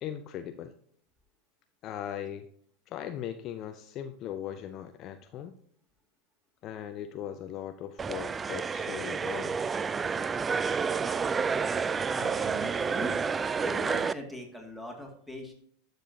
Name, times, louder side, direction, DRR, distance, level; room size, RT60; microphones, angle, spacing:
voice 1, 0.0-0.7 1.8-2.5 2.9-5.5 6.6-9.6, left 10 dB, 40° left, 9 dB, 0.5 m, -39 dB
sound 1, 8.0-14.1, right 5 dB, 20° right, 0.3 m, -30 dB
voice 2, 12.1-13.1 13.6-15.5, left 1 dB, ahead, 1 dB, 2.2 m, -40 dB
12.0 x 6.5 x 2.8 m, 0.63 s
figure-of-eight pair, 90°, 0 cm